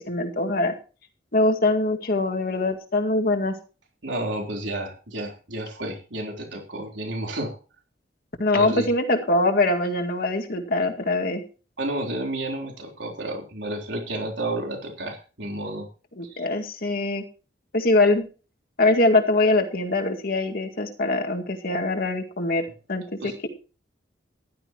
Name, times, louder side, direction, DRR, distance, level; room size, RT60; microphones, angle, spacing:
voice 1, 0.1-0.7 1.3-3.6 8.4-11.4 16.2-17.2 17.7-18.3 18.8-23.0, left 2 dB, 55° left, 4 dB, 2.1 m, -23 dB
voice 2, 4.0-7.6 8.5-8.9 11.8-15.9 16.2-16.4 23.2-23.4, right 1 dB, 85° right, 1 dB, 3.8 m, -31 dB
15.5 x 12.0 x 3.0 m, 0.34 s
head